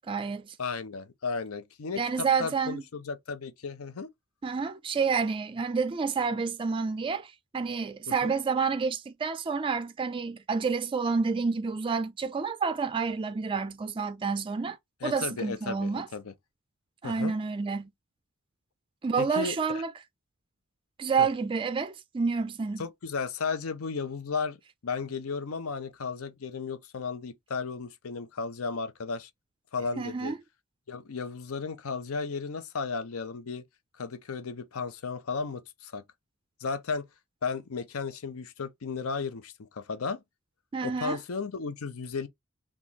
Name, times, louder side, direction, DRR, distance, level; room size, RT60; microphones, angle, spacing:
voice 1, 0.1-0.6 2.0-2.8 4.4-14.8 15.0-16.1 17.0-17.9 19.0-19.9 21.0-22.9 30.0-30.4 40.7-41.2, right 5 dB, 25° right, 0.3 m, -29 dB
voice 2, 0.6-4.1 8.1-8.3 15.0-16.3 17.0-17.3 19.2-19.6 21.2-21.3 22.8-29.3 29.7-30.3 30.9-33.6 34.0-36.0 36.6-37.1 37.4-40.2 40.8-42.3, left 5 dB, 85° left, 0.6 m, -34 dB
3.0 x 2.4 x 3.9 m
head